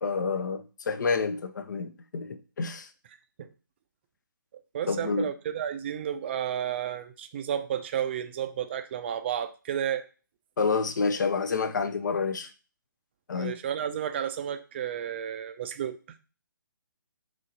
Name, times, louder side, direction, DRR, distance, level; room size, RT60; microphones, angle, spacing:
voice 1, 0.0-2.9 4.9-5.3 10.6-12.5 13.3-13.6, left 4 dB, 60° left, 0.5 m, -28 dB
voice 2, 4.7-10.1 13.3-16.0, right 9 dB, 30° right, 0.4 m, -32 dB
3.1 x 2.6 x 3.8 m
figure-of-eight pair, 135°, 11 cm